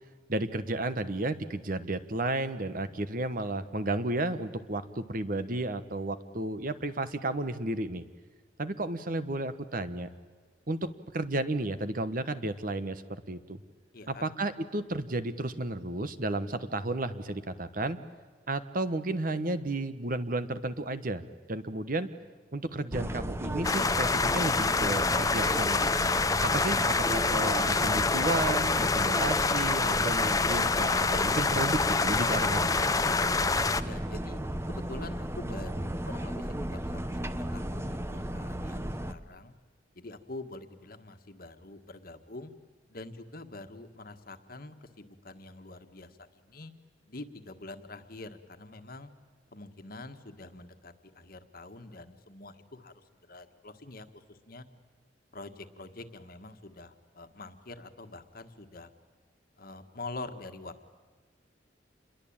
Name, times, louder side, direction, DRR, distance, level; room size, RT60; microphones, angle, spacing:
voice 1, 0.3-8.0 8.6-10.1 10.7-10.9 11.1-13.6 14.1-18.0 18.5-21.2 21.5-22.1 22.5-25.8 26.4-32.7, right 2 dB, 45° right, 12 dB, 1.2 m, -32 dB
voice 2, 13.9-14.2 33.8-34.4 34.7-39.5 39.9-42.5 42.9-46.7 47.1-49.1 49.5-52.9 53.3-54.6 55.3-58.9 59.6-60.9, left 2 dB, 50° left, 8 dB, 1.6 m, -45 dB
sound 1, 22.9-39.1, right 1 dB, 15° right, 0.9 m, -35 dB
sound 2, 23.6-33.8, left 4 dB, 20° left, 0.7 m, -26 dB
27.5 x 22.0 x 8.8 m, 1.5 s
head